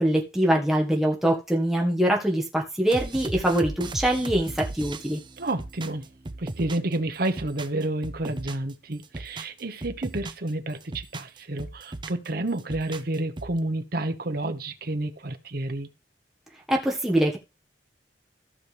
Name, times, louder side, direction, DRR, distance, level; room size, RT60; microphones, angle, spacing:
voice 1, 0.0-5.2 16.7-17.4, right 1 dB, ahead, 1.6 m, -23 dB
sound 1, 2.9-7.0 7.2-8.7 9.0-10.5 10.8-12.3 12.6-13.6, right 2 dB, 25° right, 0.6 m, -37 dB
voice 2, 5.4-6.1 6.4-15.9, right 2 dB, 60° right, 1.2 m, -30 dB
14.5 x 6.2 x 3.4 m
head